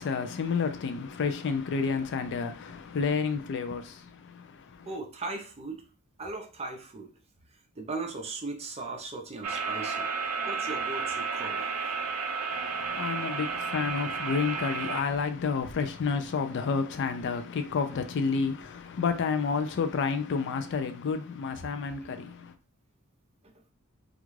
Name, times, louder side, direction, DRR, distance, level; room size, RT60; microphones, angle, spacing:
voice 1, 0.0-4.9 12.5-22.5, left 5 dB, 55° left, 0.4 m, -30 dB
voice 2, 4.9-5.8 6.2-7.1 7.8-10.1 10.5-11.7 23.4-23.5, right 3 dB, 30° right, 0.5 m, -38 dB
sound 1, 9.4-15.0, right 5 dB, 90° right, 0.4 m, -32 dB
2.4 x 2.2 x 3.1 m
head